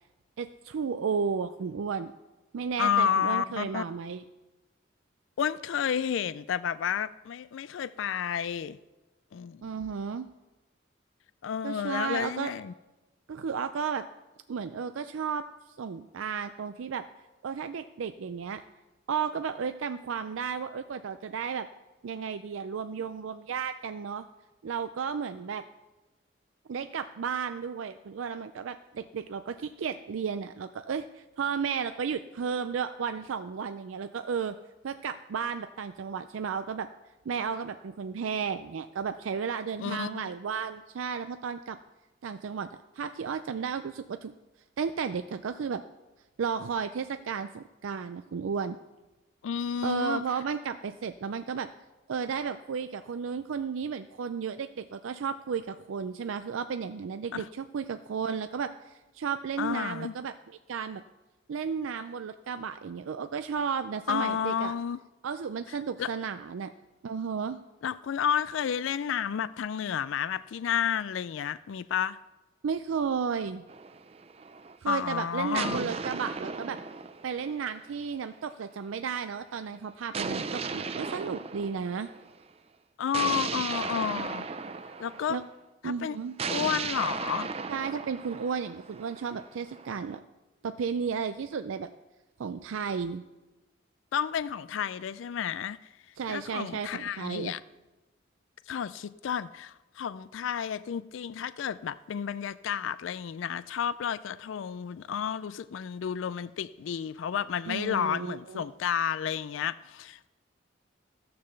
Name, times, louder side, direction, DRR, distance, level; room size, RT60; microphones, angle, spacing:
voice 1, 0.4-2.1 2.5-4.2 9.6-10.3 11.6-12.5 13.3-14.0 14.5-17.1 17.4-18.6 19.1-21.7 22.0-24.3 24.6-25.6 26.7-34.5 34.8-36.9 37.3-41.8 42.2-42.7 42.9-44.3 44.8-45.8 46.4-48.8 49.8-51.7 52.1-60.3 60.7-61.0 61.5-64.7 65.2-66.7 67.0-67.6 72.6-73.6 74.8-76.8 77.2-82.1 85.3-85.4 85.8-86.3 87.7-90.2 90.6-91.9 92.4-93.2 96.2-97.5 107.7-108.7, right 6 dB, 85° right, 0.4 m, -33 dB
voice 2, 2.8-3.8 5.4-8.8 9.3-9.6 11.4-12.7 39.8-40.3 49.4-50.2 57.3-57.5 59.6-60.1 64.1-65.0 66.0-66.1 67.8-72.2 74.9-75.9 83.0-84.5 85.0-85.4 85.8-86.2 86.5-87.5 94.1-95.8 96.3-97.6 98.7-110.3, left 8 dB, 80° left, 0.3 m, -31 dB
sound 1, 73.7-74.8 75.5-78.1 80.1-82.3 83.1-85.5 86.4-90.2, right 5 dB, 30° right, 0.4 m, -36 dB
14.0 x 6.8 x 6.7 m
head